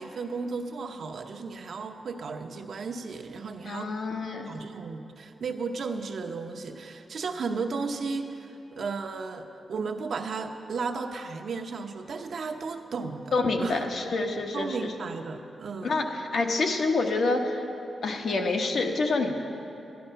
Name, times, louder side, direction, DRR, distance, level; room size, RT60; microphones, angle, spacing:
voice 1, 0.0-3.9 4.5-13.3 13.6-13.8 14.5-15.9, right 4 dB, 65° right, 3 dB, 0.8 m, -34 dB
voice 2, 3.6-4.6 13.3-14.9 15.8-17.6 18.0-19.3, left 3 dB, 60° left, 2 dB, 1.1 m, -27 dB
13.0 x 11.5 x 5.7 m, 2.9 s
wide cardioid pair, 115°, 0 cm